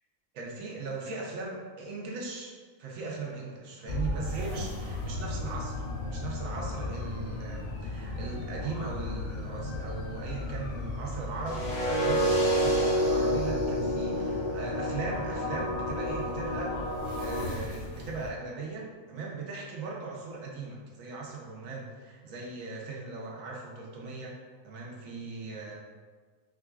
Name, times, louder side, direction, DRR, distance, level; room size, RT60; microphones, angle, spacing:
voice 1, 0.3-24.3 24.6-25.7, right 3 dB, 70° right, -2 dB, 1.1 m, -39 dB
sound 1, 3.9-18.3, left 2 dB, 85° left, 1.0 m, -37 dB
sound 2, 11.5-17.4, equal, 60° left, 0.9 m, -29 dB
4.6 x 2.4 x 2.3 m, 1.5 s
omnidirectional pair, 1.5 m